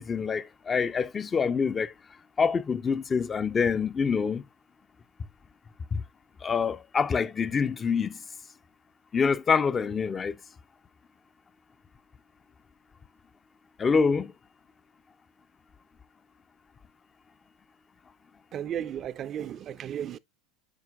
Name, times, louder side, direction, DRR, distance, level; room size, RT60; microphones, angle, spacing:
voice 1, 0.0-1.9 2.4-4.4 5.9-6.0 6.4-8.2 9.1-10.4 13.8-14.3, left 5 dB, 25° left, 0.4 m, -26 dB
voice 2, 18.5-20.2, right 10 dB, 40° right, 0.4 m, -34 dB
9.8 x 4.4 x 2.3 m
hypercardioid pair, 85°, 0 cm